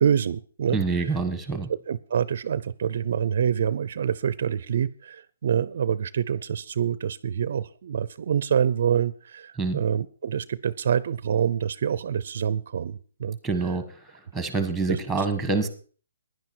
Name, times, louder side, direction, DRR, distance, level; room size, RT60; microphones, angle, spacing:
voice 1, 0.0-0.8 1.7-13.4 14.9-15.0, right 8 dB, 50° right, 18 dB, 0.5 m, -26 dB
voice 2, 0.7-1.7 9.6-9.8 13.4-14.0 14.3-15.7, right 4 dB, ahead, 10 dB, 1.4 m, -26 dB
16.0 x 10.5 x 4.6 m, 0.41 s
hypercardioid pair, 170°, 0 cm